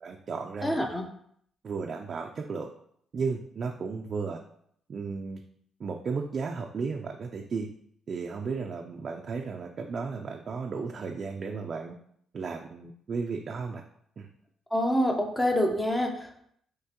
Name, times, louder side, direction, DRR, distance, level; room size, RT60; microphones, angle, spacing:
voice 1, 0.0-0.8 1.6-2.7 3.1-4.4 4.9-5.4 5.8-7.7 8.1-11.9 12.3-13.8 14.2-14.3, right 5 dB, 50° right, 2 dB, 0.4 m, -34 dB
voice 2, 0.6-1.0 14.7-16.4, equal, 15° left, 2 dB, 0.7 m, -26 dB
5.6 x 3.0 x 2.9 m, 0.68 s
cardioid pair, 90°, 0 cm